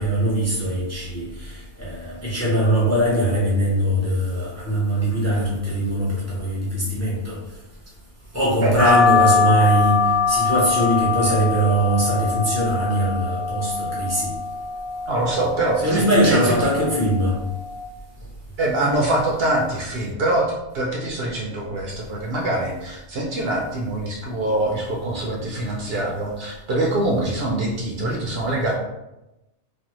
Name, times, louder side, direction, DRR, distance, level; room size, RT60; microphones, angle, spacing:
voice 1, 0.0-7.4 8.3-14.3 15.8-17.3, right 1 dB, 15° left, -6 dB, 0.6 m, -21 dB
sound 1, 8.8-17.8, left 4 dB, 80° left, 1.0 m, -23 dB
voice 2, 15.1-16.5 18.6-20.4 20.7-28.8, right 1 dB, 65° right, -2 dB, 0.7 m, -24 dB
3.2 x 2.1 x 2.9 m, 0.95 s
omnidirectional pair, 1.2 m